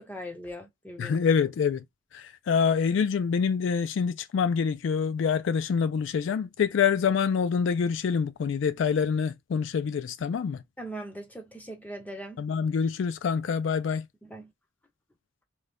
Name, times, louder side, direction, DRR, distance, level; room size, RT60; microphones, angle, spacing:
voice 1, 0.0-1.2 10.8-12.4 14.2-14.5, equal, 10° left, 0.5 m, -40 dB
voice 2, 1.0-1.8 2.1-10.6 12.4-14.0, left 6 dB, 70° left, 0.3 m, -26 dB
2.6 x 2.2 x 3.3 m
head